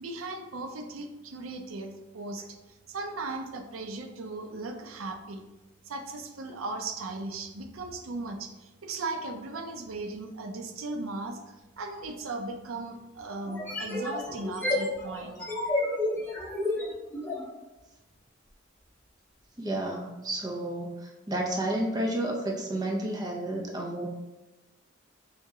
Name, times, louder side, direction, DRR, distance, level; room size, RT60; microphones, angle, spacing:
voice 1, 0.0-5.4 5.8-15.4, right 2 dB, 80° right, 6 dB, 0.5 m, -37 dB
sound 1, 12.1-12.2 13.5-17.5, left 2 dB, 10° left, 1.1 m, -31 dB
voice 2, 19.6-24.1, right 1 dB, 20° right, 0 dB, 0.5 m, -31 dB
4.3 x 2.8 x 3.5 m, 1.1 s
head